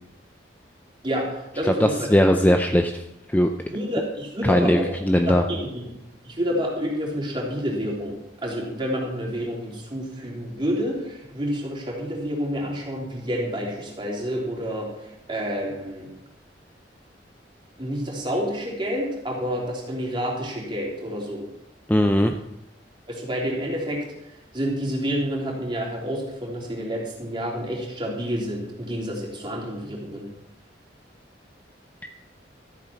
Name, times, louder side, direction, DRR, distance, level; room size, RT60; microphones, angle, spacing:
voice 1, 1.0-2.1 3.7-4.9 5.3-5.9 6.2-16.1 17.8-21.5 23.1-24.0 24.5-30.3, equal, 30° right, -3 dB, 3.5 m, -29 dB
voice 2, 1.7-3.0 3.3-3.5 4.4-5.4 21.9-22.4 32.0-32.1, equal, 10° left, 5 dB, 0.5 m, -19 dB
13.5 x 8.5 x 5.9 m, 0.85 s
head